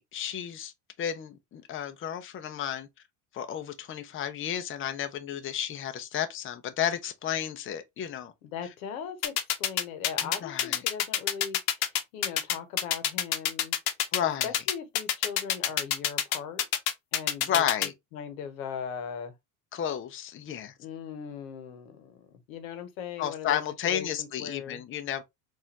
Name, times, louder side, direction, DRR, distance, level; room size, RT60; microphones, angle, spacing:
voice 1, 0.1-0.7 1.0-2.9 3.3-8.3 10.2-10.8 14.1-14.5 17.4-17.9 19.7-20.7 23.2-25.2, left 9 dB, 30° left, 0.6 m, -32 dB
voice 2, 8.4-11.6 12.1-13.7 14.4-16.6 17.1-17.6 18.1-19.3 20.8-23.6 23.8-24.8, left 7 dB, 90° left, 1.0 m, -39 dB
sound 1, 9.2-17.9, left 10 dB, 65° left, 0.9 m, -26 dB
4.1 x 2.6 x 2.8 m
supercardioid pair, 95°, 41 cm